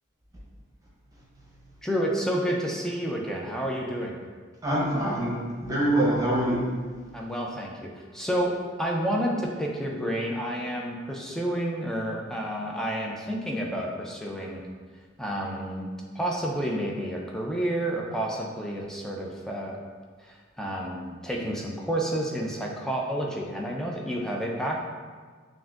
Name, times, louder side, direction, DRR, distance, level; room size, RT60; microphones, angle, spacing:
voice 1, 1.8-4.2 7.1-14.7 15.2-19.8 20.2-24.8, right 1 dB, 5° left, -1 dB, 0.4 m, -30 dB
voice 2, 4.6-6.6, right 1 dB, 20° right, -5 dB, 0.8 m, -25 dB
5.7 x 2.5 x 2.4 m, 1.5 s
head